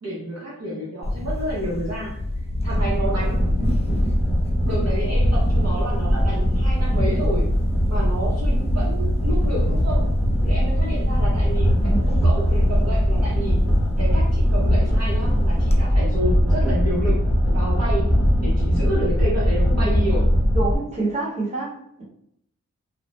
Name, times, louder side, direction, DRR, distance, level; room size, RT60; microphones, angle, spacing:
voice 1, 0.0-2.2 2.6-3.5 4.6-7.5 7.9-10.2 10.4-11.7 12.1-13.6 14.0-17.2 17.5-18.1 18.4-20.3, right 1 dB, 60° right, -6 dB, 0.8 m, -29 dB
Camera, 1.0-15.8, left 1 dB, 20° left, 0.4 m, -31 dB
sound 1, 2.6-20.7, equal, 5° right, 0.8 m, -20 dB
voice 2, 20.5-22.0, right 3 dB, 20° right, -7 dB, 1.2 m, -27 dB
2.4 x 2.1 x 3.1 m, 0.73 s
wide cardioid pair, 60°, 30 cm